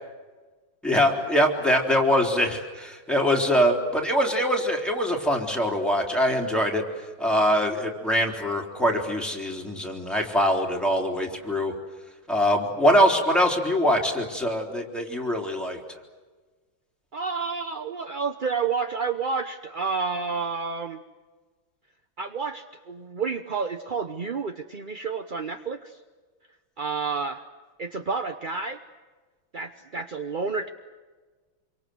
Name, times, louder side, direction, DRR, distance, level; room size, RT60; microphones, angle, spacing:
voice 1, 0.8-6.8 7.2-11.7 12.3-15.8, equal, ahead, 0 dB, 3.6 m, -23 dB
voice 2, 17.1-21.0 22.2-26.0 26.8-27.4 27.8-28.8 29.5-30.7, right 5 dB, 40° right, 7 dB, 0.8 m, -30 dB
27.0 x 24.0 x 7.9 m, 1.4 s
omnidirectional pair, 2.2 m